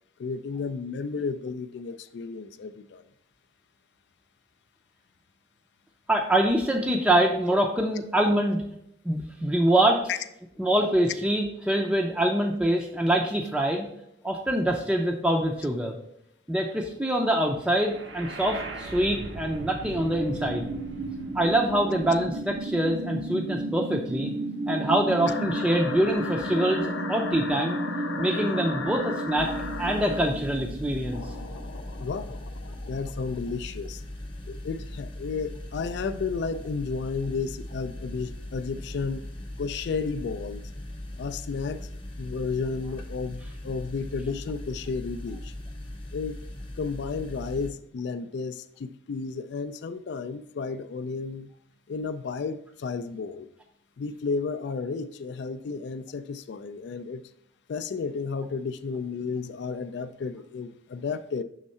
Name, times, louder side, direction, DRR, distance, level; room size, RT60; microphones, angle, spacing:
voice 1, 0.2-3.0 10.1-10.2 32.0-32.4 32.9-34.0 34.4-39.3 39.6-40.7 41.2-41.9 42.2-45.5 46.1-46.4 46.8-51.5 51.9-53.5 54.0-57.2 57.7-61.4, left 4 dB, 65° left, 11 dB, 0.3 m, -32 dB
voice 2, 6.1-8.6 9.0-10.0 10.6-13.9 14.2-15.9 16.5-20.7 21.3-24.3 24.7-27.8 28.2-29.5 29.8-31.2, right 1 dB, 5° right, -1 dB, 0.5 m, -25 dB
sound 1, 17.8-31.7, right 2 dB, 75° right, 0.7 m, -34 dB
sound 2, 25.2-30.3 31.1-33.6, left 4 dB, 90° left, 0.7 m, -37 dB
sound 3, 29.4-47.7, left 1 dB, 30° left, 0.9 m, -39 dB
6.4 x 3.6 x 4.2 m, 0.75 s
head